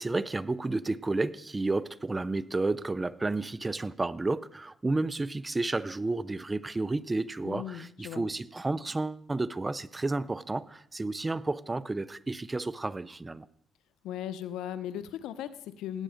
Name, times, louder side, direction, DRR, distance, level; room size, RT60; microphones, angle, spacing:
voice 1, 0.0-13.5, right 2 dB, 20° right, 0.5 m, -31 dB
voice 2, 7.4-8.2 14.0-16.0, left 10 dB, 85° left, 0.7 m, -37 dB
18.0 x 8.8 x 5.1 m
cardioid pair, 90°, 0 cm